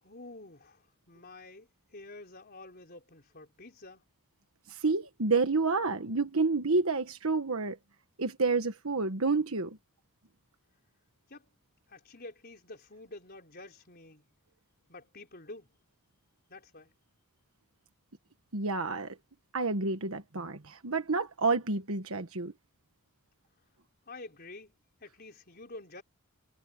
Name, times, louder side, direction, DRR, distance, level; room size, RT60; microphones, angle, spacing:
voice 1, 0.0-4.0 11.3-11.5 11.9-14.3 14.9-15.7 16.5-16.9 24.1-24.7 25.0-26.0, left 2 dB, 45° left, 4.4 m, -49 dB
voice 2, 4.7-7.8 8.2-9.8 18.5-19.2 19.5-22.5, right 3 dB, 65° right, 1.4 m, -29 dB
head